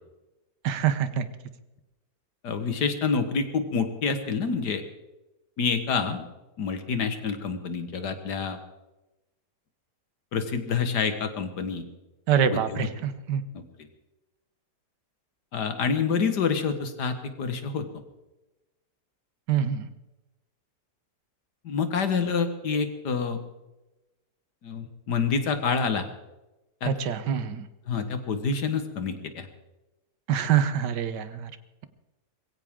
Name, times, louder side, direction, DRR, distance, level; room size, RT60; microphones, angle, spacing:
voice 1, 0.6-1.3 12.3-13.4 19.5-19.9 26.8-27.7 30.3-31.5, right 8 dB, 90° right, 12 dB, 1.6 m, -25 dB
voice 2, 2.4-4.8 5.6-6.2 6.6-8.6 10.3-11.9 12.5-12.9 15.5-17.9 21.6-23.4 24.6-26.0 26.8-27.0 27.9-29.5, left 5 dB, 80° left, 8 dB, 2.0 m, -27 dB
21.5 x 16.0 x 3.7 m, 1.0 s
omnidirectional pair, 1.8 m